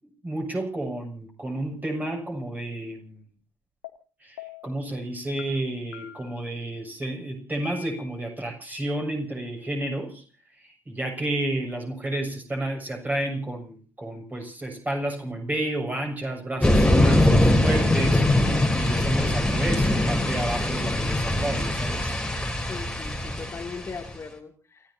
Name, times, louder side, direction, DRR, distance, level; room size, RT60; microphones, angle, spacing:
voice 1, 0.0-3.2 4.2-10.2 10.6-18.2 18.7-22.2, right 1 dB, 20° right, 2 dB, 7.0 m, -31 dB
sound 1, 3.8-3.9 4.4-4.8 5.4-5.5 5.9-6.4 7.0-7.1 7.6-8.2, left 9 dB, 75° left, 1.8 m, -42 dB
sound 2, 16.6-24.1, left 1 dB, 10° left, 3.7 m, -22 dB
voice 2, 22.7-24.9, left 5 dB, 30° left, 3 dB, 2.7 m, -39 dB
29.0 x 16.5 x 2.8 m, 0.38 s
figure-of-eight pair, 45°, 9 cm